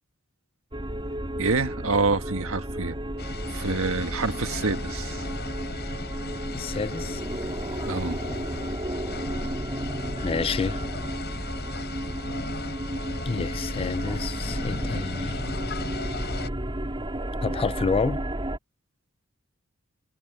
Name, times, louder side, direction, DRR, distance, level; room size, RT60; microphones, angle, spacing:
sound 1, 0.7-18.6, right 1 dB, 25° right, 3.4 m, -32 dB
voice 1, 1.4-3.0 3.5-5.2 7.9-8.2, right 3 dB, 80° right, 1.6 m, -27 dB
sound 2, 3.2-16.5, left 3 dB, 55° left, 6.8 m, -37 dB
voice 2, 6.5-7.2 10.2-10.8 13.3-15.4 17.4-18.2, left 4 dB, 25° left, 0.3 m, -29 dB
head